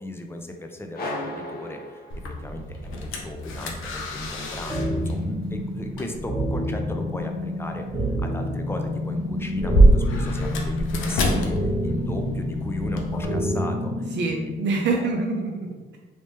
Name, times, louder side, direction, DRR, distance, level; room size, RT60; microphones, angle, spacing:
voice 1, 0.0-2.0 2.4-15.1, left 1 dB, 10° left, 4 dB, 0.5 m, -36 dB
sound 1, 0.9-2.7, left 1 dB, 50° left, 0.8 m, -35 dB
sound 2, 2.1-13.2, right 1 dB, 85° left, 0.6 m, -26 dB
sound 3, 4.7-14.7, left 1 dB, 15° right, 1.2 m, -28 dB
voice 2, 14.1-16.0, right 3 dB, 65° right, 0 dB, 0.5 m, -26 dB
3.2 x 2.9 x 3.2 m, 1.3 s
cardioid pair, 90°, 20 cm